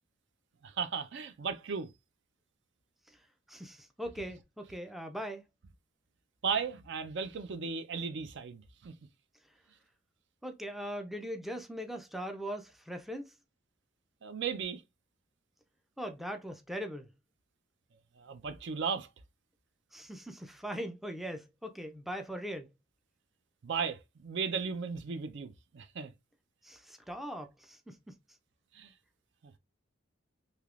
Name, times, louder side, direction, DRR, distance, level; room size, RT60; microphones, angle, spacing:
voice 1, 0.6-1.9 6.4-8.9 14.2-14.8 18.2-19.1 23.6-26.1 28.7-28.9 29.4-29.6, right 6 dB, 65° right, 0.5 m, -36 dB
voice 2, 3.5-5.4 10.4-13.3 16.0-17.1 19.9-22.7 26.6-28.2, equal, ahead, 0.4 m, -40 dB
3.4 x 2.8 x 2.4 m
head